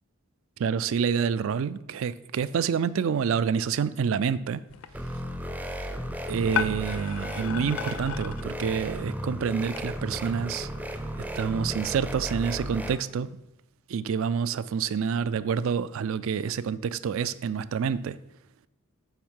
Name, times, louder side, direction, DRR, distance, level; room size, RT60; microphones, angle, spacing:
voice 1, 0.6-4.6 6.3-10.7 11.3-13.4 13.9-18.2, right 6 dB, 65° right, 0.3 m, -28 dB
sound 1, 4.7-9.8, left 8 dB, 65° left, 0.4 m, -37 dB
sound 2, 4.9-13.0, equal, 5° right, 0.5 m, -34 dB
8.1 x 3.6 x 6.3 m
head